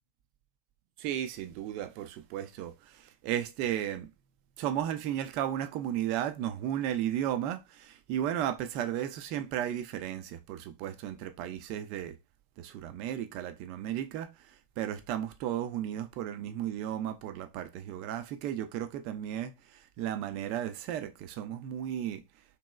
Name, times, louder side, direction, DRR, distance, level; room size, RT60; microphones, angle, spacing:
voice 1, 1.0-4.1 4.6-12.1 12.6-14.3 14.8-19.5 20.0-22.2, right 11 dB, 45° right, 0.4 m, -34 dB
2.9 x 2.8 x 2.2 m
figure-of-eight pair, 90°, 0 cm